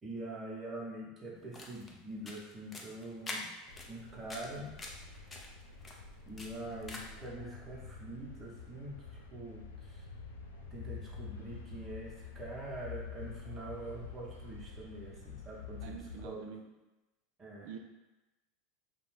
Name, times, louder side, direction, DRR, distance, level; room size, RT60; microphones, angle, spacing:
voice 1, 0.0-3.5 3.9-4.8 6.3-10.1 10.5-16.0 16.2-16.5 17.4-17.7, right 2 dB, 25° right, -4 dB, 0.8 m, -44 dB
sound 1, 1.3-7.3, left 2 dB, 20° left, 0.5 m, -47 dB
sound 2, 3.7-16.2, left 5 dB, 85° left, 0.3 m, -48 dB
voice 2, 15.8-16.7 17.6-17.8, right 7 dB, 65° right, 4 dB, 0.3 m, -46 dB
2.6 x 2.0 x 3.1 m, 1.0 s
hypercardioid pair, 95°, 0 cm